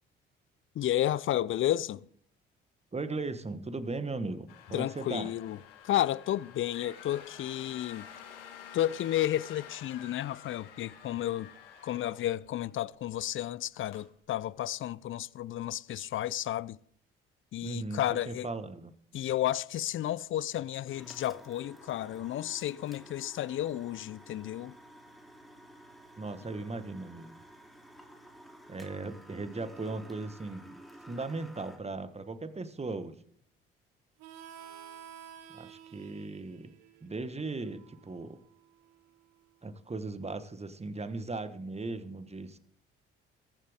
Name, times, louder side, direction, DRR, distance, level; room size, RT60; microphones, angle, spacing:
voice 1, 0.7-2.1 4.7-5.6 5.8-8.1 8.7-11.5 11.8-16.8 17.5-18.5 19.1-24.7, left 13 dB, 45° left, 0.5 m, -32 dB
voice 2, 2.9-5.3 17.6-18.0 18.3-18.9 26.2-27.4 28.7-30.8 31.1-33.2 35.5-36.7 37.0-38.4 39.6-42.6, right 3 dB, 20° right, 1.4 m, -37 dB
sound 1, 4.5-12.7 13.1-13.3 13.8-14.1, left 8 dB, 80° left, 1.5 m, -50 dB
sound 2, 20.7-31.8, right 1 dB, ahead, 2.7 m, -53 dB
Harmonica, 34.2-39.5, right 9 dB, 65° right, 1.4 m, -52 dB
22.5 x 7.4 x 3.6 m
hypercardioid pair, 45°, 29 cm